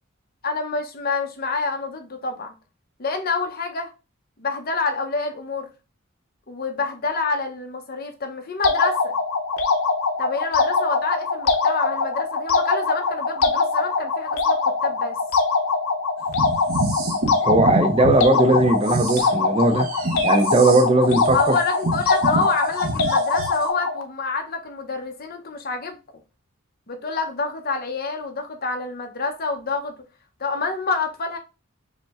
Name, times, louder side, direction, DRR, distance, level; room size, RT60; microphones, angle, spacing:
voice 1, 0.4-2.5 3.0-3.9 4.4-5.7 6.5-9.1 10.2-15.2 21.3-26.0 26.9-29.9 30.4-31.4, left 3 dB, 45° left, 0.8 m, -27 dB
sound 1, 8.6-24.0, left 4 dB, 85° left, 0.7 m, -23 dB
sound 2, 16.3-18.2 18.5-23.6, right 2 dB, 80° right, 0.9 m, -28 dB
voice 2, 17.4-19.9 20.2-21.6, right 2 dB, 30° right, 0.4 m, -18 dB
5.1 x 2.1 x 3.4 m
head